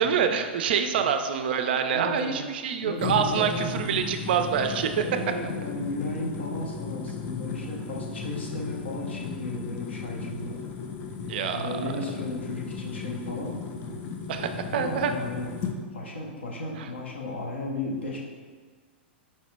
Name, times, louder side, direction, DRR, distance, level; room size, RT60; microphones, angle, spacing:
voice 1, 0.0-4.9 11.3-11.7 14.3-15.1 16.8-16.9, right 7 dB, 60° right, 7 dB, 0.3 m, -26 dB
voice 2, 1.9-2.4 2.8-4.1 5.0-10.6 11.5-13.6 14.6-15.5 15.9-18.2, left 2 dB, 75° left, -2 dB, 0.8 m, -35 dB
sound 1, 3.0-15.8, left 5 dB, 35° left, 0.4 m, -35 dB
4.4 x 2.8 x 3.2 m, 1.5 s
figure-of-eight pair, 105°, 6 cm